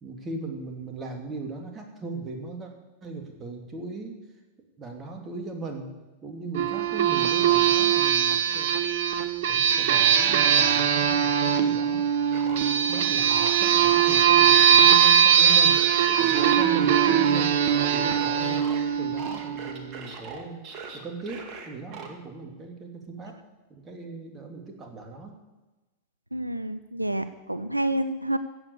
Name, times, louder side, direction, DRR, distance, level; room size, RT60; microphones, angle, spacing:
voice 1, 0.0-2.7 3.0-4.2 4.8-5.9 6.2-8.7 9.5-12.1 12.4-15.8 16.2-17.6 17.9-20.6 20.9-23.3 23.7-25.3, right 3 dB, 20° right, 2 dB, 2.8 m, -38 dB
sound 1, 6.5-19.8, right 8 dB, 55° right, 1.0 m, -21 dB
sound 2, 12.3-18.8 19.2-22.1, right 5 dB, 35° right, 2.1 m, -40 dB
voice 2, 26.3-28.4, right 1 dB, 85° right, 12 dB, 0.5 m, -28 dB
14.5 x 8.0 x 8.1 m, 1.1 s
figure-of-eight pair, 90°, 0 cm